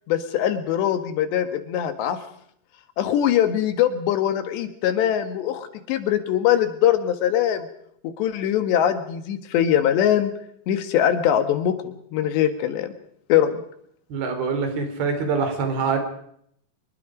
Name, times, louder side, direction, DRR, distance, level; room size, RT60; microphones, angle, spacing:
voice 1, 0.1-2.2 3.0-7.7 8.0-10.3 10.7-11.7 12.1-12.9 13.3-13.6, left 10 dB, 80° left, 10 dB, 3.8 m, -22 dB
voice 2, 14.1-16.0, right 5 dB, 65° right, 6 dB, 5.3 m, -24 dB
26.0 x 22.0 x 5.1 m, 0.69 s
omnidirectional pair, 4.9 m